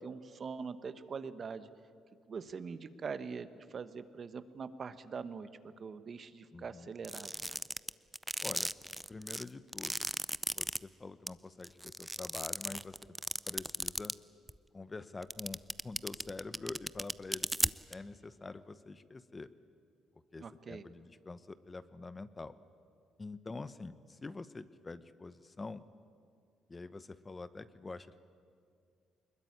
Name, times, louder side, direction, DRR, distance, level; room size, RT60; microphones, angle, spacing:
voice 1, 0.0-1.7 2.3-7.3 20.4-20.8, right 5 dB, 45° right, 13 dB, 1.1 m, -43 dB
voice 2, 6.5-6.9 8.4-8.7 9.1-10.1 10.5-13.0 13.5-14.1 14.7-19.5 20.3-22.5 23.2-25.8 26.7-28.2, left 3 dB, 25° left, 14 dB, 0.9 m, -46 dB
sound 1, 7.0-10.8 11.3-11.4 11.6-14.1 14.5-14.6 15.2-17.9, right 1 dB, 5° right, 0.5 m, -35 dB
21.0 x 20.5 x 9.6 m, 2.3 s
supercardioid pair, 75°, 0 cm